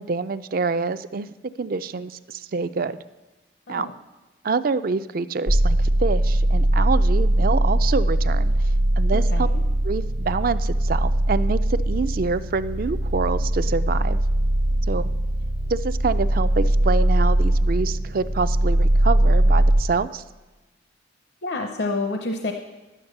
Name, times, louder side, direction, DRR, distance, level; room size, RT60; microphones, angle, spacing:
voice 1, 0.0-3.0 3.7-3.9 4.4-8.5 9.0-9.5 9.8-14.2 14.9-15.1 15.7-20.2, right 4 dB, 50° right, 13 dB, 0.4 m, -26 dB
sound 1, 5.5-19.8, right 1 dB, 65° right, 1.0 m, -20 dB
voice 2, 9.1-9.6 21.4-22.5, left 2 dB, 60° left, 4 dB, 0.8 m, -28 dB
11.5 x 8.7 x 6.6 m, 1.1 s
head